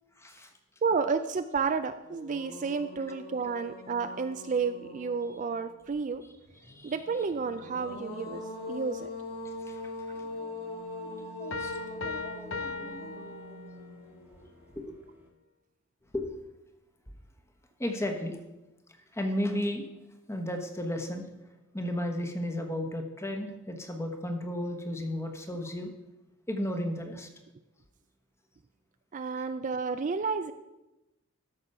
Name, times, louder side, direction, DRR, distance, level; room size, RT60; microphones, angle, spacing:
voice 1, 0.2-0.5 6.2-6.3 6.6-7.0 9.6-9.8 10.1-13.2 14.7-15.0 16.1-16.3 17.8-18.4 19.1-19.9 20.3-21.3 21.7-25.9 26.5-27.3, left 1 dB, 10° left, 4 dB, 1.1 m, -34 dB
voice 2, 0.8-6.2 6.8-9.1 11.7-11.9 29.1-30.5, right 5 dB, 35° right, 9 dB, 0.4 m, -31 dB
sound 1, 1.6-1.7 2.0-5.7 7.4-14.6, left 2 dB, 45° left, 2.0 m, -42 dB
sound 2, 5.8-15.3, right 3 dB, 10° right, 1.3 m, -54 dB
sound 3, 11.5-14.0, left 4 dB, 60° left, 0.8 m, -38 dB
13.5 x 6.2 x 5.5 m, 1.0 s
head